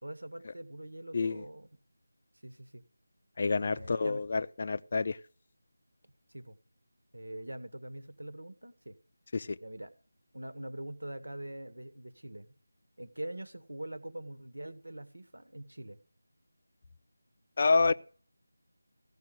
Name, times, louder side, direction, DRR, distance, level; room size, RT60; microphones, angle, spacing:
voice 1, 0.0-1.7 2.4-2.8 3.4-4.2 6.3-6.6 7.1-9.0 9.6-9.9 10.3-12.5 13.0-16.0 17.9-18.0, right 1 dB, 85° right, 1.6 m, -43 dB
voice 2, 3.4-5.2 9.3-9.6 17.6-17.9, left 4 dB, 40° left, 0.6 m, -28 dB
15.5 x 5.8 x 7.7 m
figure-of-eight pair, 165°, 0 cm